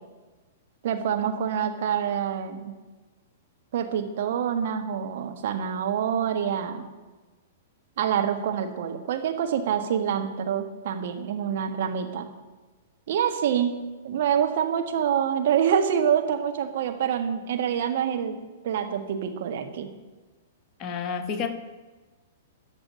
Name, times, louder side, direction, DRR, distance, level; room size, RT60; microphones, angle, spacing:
voice 1, 0.8-2.7 3.7-6.9 8.0-12.3 13.1-13.7 14.0-18.4 18.6-19.9, right 8 dB, 55° right, 5 dB, 1.7 m, -26 dB
voice 2, 20.8-21.5, left 6 dB, 30° left, 6 dB, 1.4 m, -30 dB
14.5 x 6.2 x 9.9 m, 1.2 s
figure-of-eight pair, 105°, 0 cm